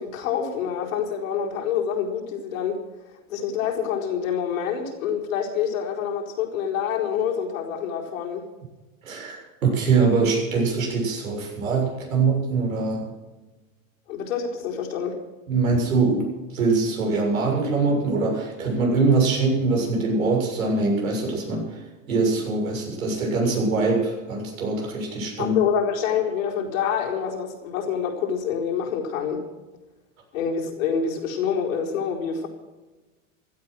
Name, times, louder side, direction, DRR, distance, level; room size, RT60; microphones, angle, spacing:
voice 1, 0.0-2.8 3.3-8.5 14.1-15.2 25.4-29.4 30.3-32.5, left 7 dB, 80° left, 0 dB, 4.4 m, -26 dB
voice 2, 9.0-13.1 15.5-25.6, right 3 dB, 90° right, 0 dB, 6.9 m, -23 dB
16.0 x 12.5 x 6.3 m, 1.2 s
hypercardioid pair, 100°, 40 cm